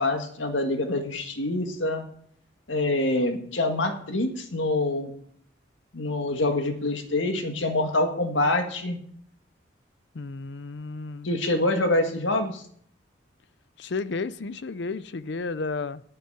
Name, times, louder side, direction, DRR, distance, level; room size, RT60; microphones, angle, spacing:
voice 1, 0.0-2.0 2.7-5.1 5.9-9.0 11.2-12.6, left 2 dB, 80° left, 6 dB, 1.8 m, -25 dB
voice 2, 10.1-11.3 13.8-16.0, left 4 dB, 65° left, 17 dB, 0.6 m, -32 dB
10.0 x 7.8 x 7.9 m, 0.62 s
head